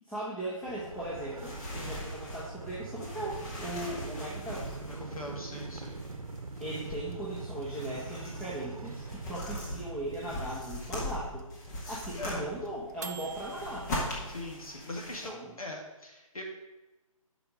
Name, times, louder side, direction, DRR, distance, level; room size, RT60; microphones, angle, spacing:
voice 1, 0.1-4.7 6.6-11.4 11.9-13.9 15.2-15.5, right 1 dB, 5° left, -8 dB, 1.1 m, -38 dB
sound 1, 0.6-15.3, left 1 dB, 30° left, 1.9 m, -41 dB
Motorcycle, 0.7-12.9, right 3 dB, 85° right, 0.8 m, -44 dB
voice 2, 4.9-6.0 12.2-12.4 14.3-16.4, left 1 dB, 80° left, 0 dB, 2.3 m, -41 dB
sound 2, 5.6-13.9, right 7 dB, 30° right, 0.5 m, -47 dB
8.1 x 5.6 x 5.2 m, 1.1 s
figure-of-eight pair, 145°, 18 cm